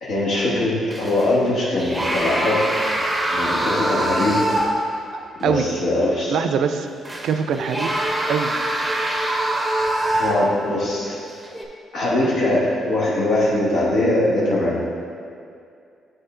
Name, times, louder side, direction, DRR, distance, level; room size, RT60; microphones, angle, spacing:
voice 1, 0.0-2.6 3.3-4.5 5.4-6.4 10.2-11.2 11.9-14.8, left 1 dB, 75° left, -7 dB, 1.4 m, -21 dB
sound 1, 0.9-1.3 1.8-5.0 5.4-5.5 7.0-10.7 11.4-11.6, right 1 dB, 10° right, 0.7 m, -23 dB
voice 2, 5.1-5.7 6.3-6.9 7.2-8.0 8.3-8.5, right 7 dB, 75° right, 8 dB, 0.3 m, -23 dB
8.1 x 3.7 x 3.7 m, 2.4 s
cardioid pair, 90°, 0 cm